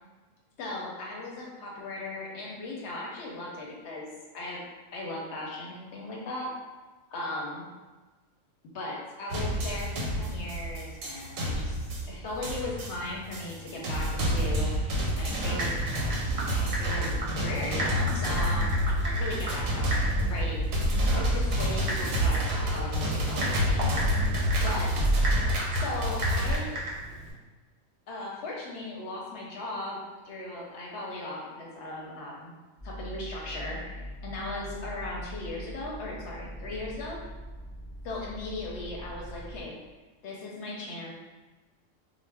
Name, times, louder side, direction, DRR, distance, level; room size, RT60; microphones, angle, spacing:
voice 1, 0.6-4.1 4.3-4.6 4.9-6.5 7.1-7.7 8.7-14.8 15.1-15.8 16.6-22.4 22.7-23.9 24.6-24.9 25.7-26.7 28.1-32.5 32.8-37.2 38.0-39.8 40.2-41.1, left 2 dB, 65° left, -2 dB, 0.8 m, -37 dB
sound 1, 9.3-26.6, equal, 85° right, 1.0 m, -28 dB
Typing, 15.4-27.3, right 1 dB, 55° right, 0.8 m, -36 dB
sound 2, 32.8-39.6, equal, 25° left, 0.7 m, -42 dB
2.3 x 2.0 x 3.3 m, 1.2 s
omnidirectional pair, 1.4 m